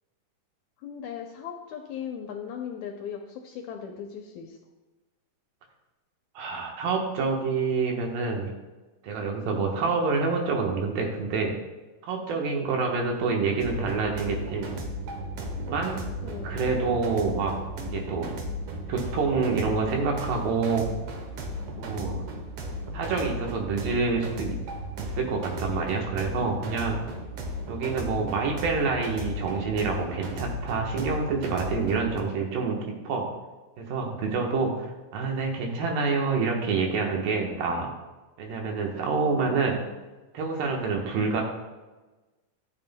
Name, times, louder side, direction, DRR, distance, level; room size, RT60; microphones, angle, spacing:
voice 1, 0.8-4.6 16.2-17.0 39.2-40.0, left 8 dB, 75° left, 3 dB, 1.8 m, -39 dB
voice 2, 6.4-8.5 9.0-11.5 12.0-14.7 15.5-16.0 16.4-17.6 17.8-18.3 18.9-20.9 21.8-22.2 22.9-24.6 25.0-27.0 27.7-32.8 33.0-33.3 33.8-37.9 38.4-39.8 40.3-41.4, right 4 dB, 90° right, 1 dB, 3.0 m, -27 dB
sound 1, 13.6-32.2, equal, 65° right, 1.6 m, -35 dB
12.0 x 7.5 x 2.2 m, 1.2 s
omnidirectional pair, 3.9 m